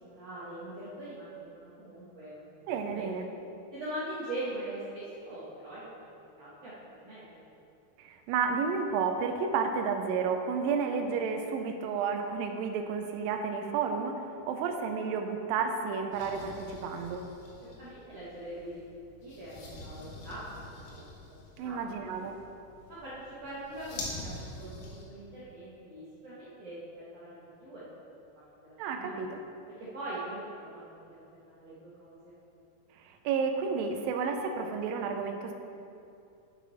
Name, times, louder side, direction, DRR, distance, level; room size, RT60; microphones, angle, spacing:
voice 1, 0.0-3.1 3.7-7.3 17.6-20.4 20.8-21.0 21.6-21.8 22.9-27.8 28.3-29.2 29.8-32.3, right 1 dB, 70° right, -10 dB, 1.5 m, -42 dB
voice 2, 2.7-3.3 8.0-17.3 21.6-22.4 28.8-29.4 33.3-35.5, right 5 dB, 90° right, 5 dB, 2.0 m, -31 dB
sound 1, 16.1-25.1, left 2 dB, 80° left, 1.5 m, -46 dB
7.4 x 7.3 x 4.1 m, 2.6 s
omnidirectional pair, 4.7 m